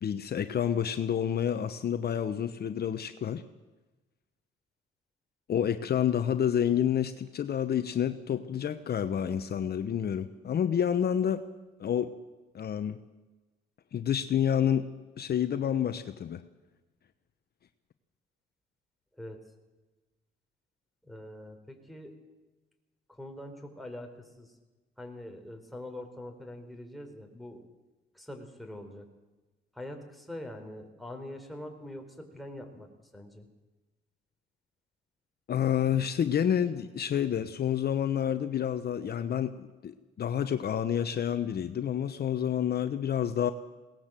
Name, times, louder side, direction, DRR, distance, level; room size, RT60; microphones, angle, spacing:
voice 1, 0.0-3.4 5.5-11.4 11.8-12.1 12.5-13.0 13.9-14.9 15.2-16.4 35.5-43.5, left 9 dB, 55° left, 10 dB, 0.9 m, -29 dB
voice 2, 21.0-22.1 23.1-24.6 25.0-27.6 28.1-29.1 29.7-32.9 33.1-33.5, left 1 dB, ahead, 2 dB, 4.2 m, -43 dB
21.5 x 18.5 x 7.6 m, 1.2 s
cardioid pair, 90°, 20 cm